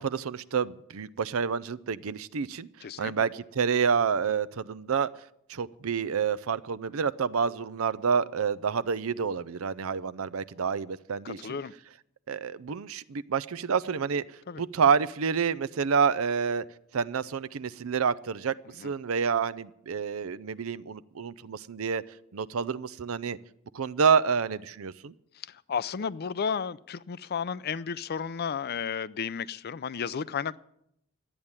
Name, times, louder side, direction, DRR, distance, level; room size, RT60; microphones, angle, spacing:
voice 1, 0.0-2.7 3.0-5.1 5.5-11.4 12.3-14.2 14.6-16.6 16.9-18.5 18.8-22.0 22.3-23.4 23.7-25.1, right 6 dB, 75° right, 0.5 m, -28 dB
voice 2, 2.8-3.3 11.2-11.7 14.5-14.6 18.8-18.9 25.4-30.6, left 6 dB, 45° left, 0.5 m, -33 dB
12.5 x 8.8 x 9.7 m
head